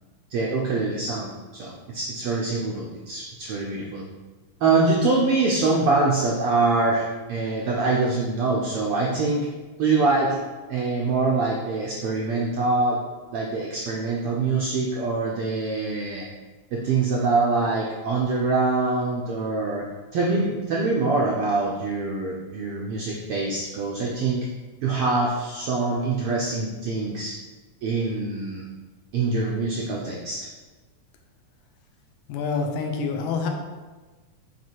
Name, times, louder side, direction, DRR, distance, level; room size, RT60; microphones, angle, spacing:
voice 1, 0.3-4.0 4.6-9.5 9.8-10.4 10.7-13.0 13.3-16.3 16.7-19.9 20.1-24.5 24.8-27.3 27.8-28.7 29.1-30.5, right 3 dB, 80° right, -3 dB, 1.3 m, -24 dB
voice 2, 32.3-33.5, left 5 dB, 80° left, 2 dB, 2.0 m, -26 dB
7.7 x 3.0 x 4.5 m, 1.3 s
omnidirectional pair, 3.3 m